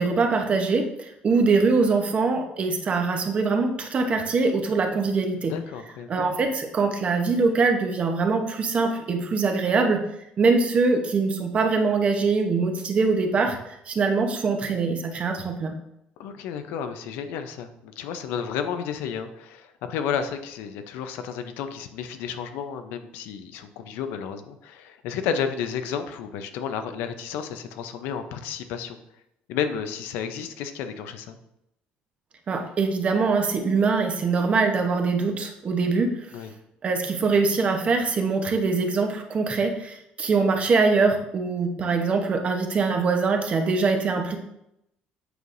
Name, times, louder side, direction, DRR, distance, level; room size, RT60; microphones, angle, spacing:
voice 1, 0.0-5.5 6.1-10.0 10.4-13.6 13.9-15.7 32.5-36.3 36.8-44.4, right 4 dB, 40° right, 4 dB, 0.9 m, -23 dB
voice 2, 5.4-6.2 16.2-29.0 29.5-31.4 36.3-36.5, left 7 dB, 85° left, 8 dB, 0.6 m, -32 dB
8.0 x 4.7 x 2.6 m, 0.81 s
cardioid pair, 120°, 3 cm